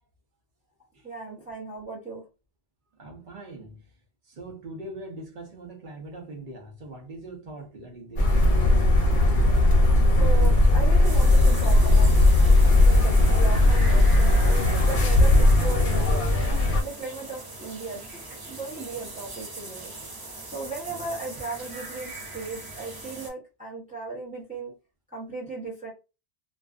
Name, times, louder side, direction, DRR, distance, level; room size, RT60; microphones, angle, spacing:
voice 1, 1.0-2.2 10.1-14.4 14.8-16.3 16.8-18.1 18.4-19.9 20.5-24.7 25.1-25.9, right 3 dB, 10° right, 0.8 m, -36 dB
voice 2, 3.0-3.8 4.3-8.3 20.9-21.0, right 2 dB, 50° right, 0.9 m, -41 dB
sound 1, 8.2-16.8, left 2 dB, 50° left, 0.8 m, -18 dB
sound 2, 11.0-23.3, right 2 dB, 35° right, 0.4 m, -40 dB
2.5 x 2.3 x 2.4 m
omnidirectional pair, 1.1 m